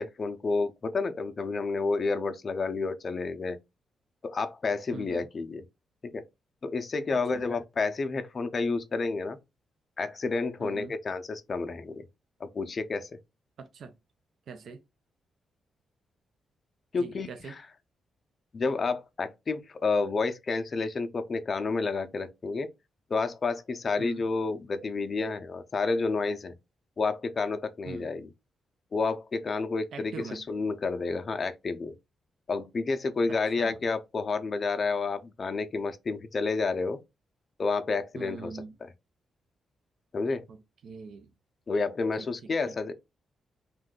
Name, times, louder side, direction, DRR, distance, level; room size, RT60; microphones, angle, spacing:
voice 1, 0.0-3.6 4.2-5.6 6.0-6.2 6.6-9.4 10.0-12.1 12.4-13.1 16.9-17.6 18.5-22.7 23.1-26.5 27.0-28.3 28.9-31.9 32.5-37.0 37.6-38.6 40.1-40.4 41.7-42.9, left 4 dB, 40° left, 0.4 m, -30 dB
voice 2, 4.9-5.3 7.1-7.5 10.6-10.9 13.6-13.9 14.5-14.8 17.0-17.6 24.0-24.2 27.9-28.1 29.9-30.5 33.3-33.8 38.1-38.8 40.5-41.3 42.2-42.8, right 5 dB, 70° right, 0.4 m, -43 dB
2.6 x 2.3 x 3.6 m
cardioid pair, 100°, 0 cm